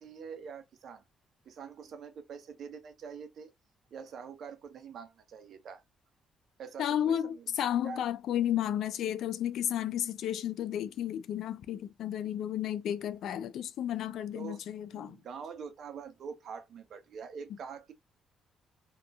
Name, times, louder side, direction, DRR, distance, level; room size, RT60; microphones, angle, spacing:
voice 1, 0.0-1.0 1.4-3.5 3.9-5.8 6.6-7.5 7.8-8.0 14.3-14.6 14.9-17.9, right 6 dB, 65° right, 0.6 m, -45 dB
voice 2, 6.8-15.2, left 10 dB, 75° left, 0.3 m, -32 dB
2.8 x 2.3 x 2.4 m
cardioid pair, 90°, 0 cm